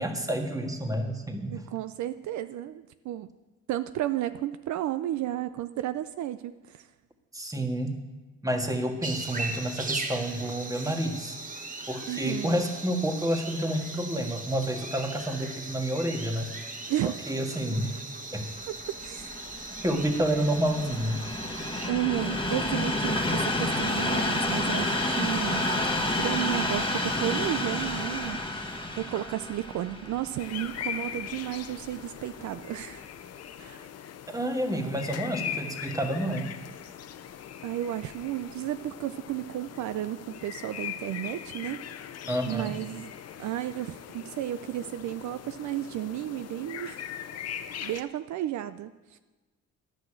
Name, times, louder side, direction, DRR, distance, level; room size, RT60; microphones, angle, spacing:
voice 1, 0.0-1.6 7.3-8.0 8.4-11.4 11.9-16.5 17.0-18.0 18.3-18.5 19.8-21.3 34.3-36.5 42.3-42.7, right 1 dB, 10° right, 4 dB, 1.6 m, -29 dB
voice 2, 1.5-3.3 3.7-6.9 12.1-12.6 16.9-17.1 18.7-18.8 19.0-19.2 21.9-25.7 26.2-33.1 33.6-33.9 37.6-41.8 42.5-43.1 43.4-47.0 47.5-49.2, right 13 dB, 70° right, 12 dB, 0.5 m, -33 dB
sound 1, 9.0-21.9, right 3 dB, 25° right, 1.4 m, -39 dB
Train, 18.9-32.1 32.8-32.9, left 1 dB, 15° left, 1.5 m, -30 dB
sound 2, 30.4-48.0, left 9 dB, 55° left, 0.7 m, -40 dB
10.5 x 6.5 x 8.7 m, 1.2 s
cardioid pair, 90°, 30 cm